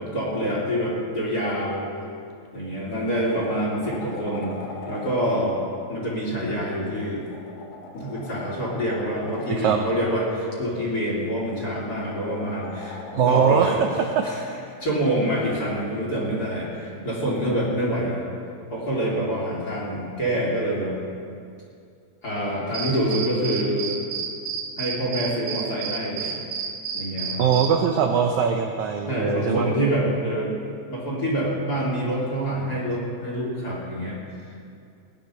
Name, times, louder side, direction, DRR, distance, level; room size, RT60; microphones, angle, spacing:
voice 1, 0.0-1.9 2.5-4.6 4.9-5.6 5.9-7.2 7.9-13.8 14.2-14.4 14.8-18.2 18.7-20.9 22.2-23.9 24.8-26.4 26.9-27.4 29.1-30.6 30.9-34.2, right 1 dB, 30° left, -4 dB, 2.8 m, -26 dB
sound 1, 2.3-2.5 2.9-5.2 6.8-9.6 11.1-13.9 16.2-16.3, left 3 dB, 65° left, 3.0 m, -40 dB
voice 2, 9.5-9.8 13.1-13.7 14.2-14.3 16.3-16.4 27.4-29.7, right 7 dB, 75° right, 3 dB, 1.7 m, -21 dB
sound 2, 22.7-27.7, right 6 dB, 60° right, 2.5 m, -30 dB
19.5 x 9.6 x 5.7 m, 2.4 s
omnidirectional pair, 4.3 m